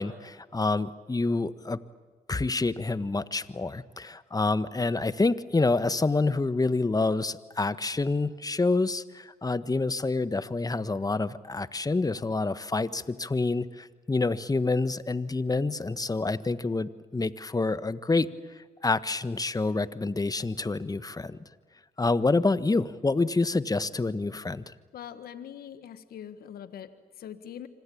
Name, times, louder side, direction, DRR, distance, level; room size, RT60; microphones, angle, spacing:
voice 1, 0.0-1.8 2.3-18.3 18.8-21.4 22.0-24.7, left 3 dB, 25° left, 14 dB, 1.5 m, -27 dB
voice 2, 24.9-27.7, left 9 dB, 75° left, 12 dB, 1.6 m, -43 dB
26.5 x 26.0 x 8.7 m, 1.4 s
supercardioid pair, 55°, 16 cm